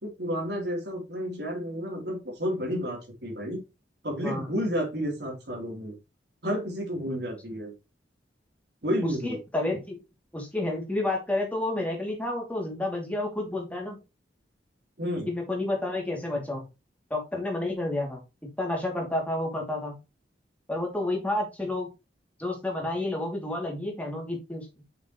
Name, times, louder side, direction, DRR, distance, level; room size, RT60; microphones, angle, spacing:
voice 1, 0.0-3.6 4.0-6.0 6.4-7.7 8.8-9.4 15.0-15.3, equal, 65° right, 1 dB, 3.2 m, -31 dB
voice 2, 9.0-10.0 10.3-14.0 15.3-16.7 17.1-18.2 18.6-19.9 20.7-21.9 22.4-24.7, left 2 dB, 10° left, 0 dB, 2.5 m, -30 dB
7.0 x 5.9 x 3.0 m, 0.26 s
head